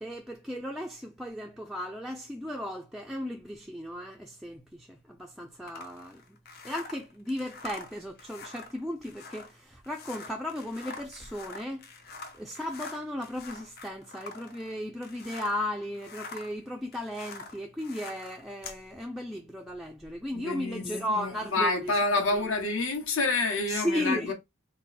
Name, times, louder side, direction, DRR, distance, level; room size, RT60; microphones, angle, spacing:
voice 1, 0.0-6.4 6.6-11.9 12.4-22.0 22.3-22.4 23.7-24.3, left 1 dB, ahead, 0.3 m, -35 dB
sound 1, 5.7-15.7 15.9-18.8, left 3 dB, 45° left, 0.7 m, -45 dB
voice 2, 20.3-24.3, left 3 dB, 70° left, 1.3 m, -28 dB
3.8 x 2.2 x 4.1 m
head